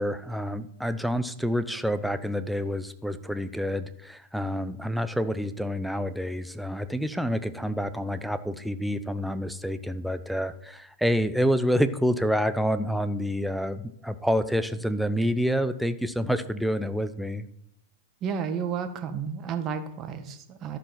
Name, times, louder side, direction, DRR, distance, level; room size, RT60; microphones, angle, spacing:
voice 1, 0.0-17.5, equal, ahead, 11 dB, 0.6 m, -28 dB
voice 2, 18.2-20.8, right 7 dB, 35° right, 7 dB, 1.3 m, -32 dB
13.5 x 4.8 x 5.8 m, 0.76 s
hypercardioid pair, 130°, 0 cm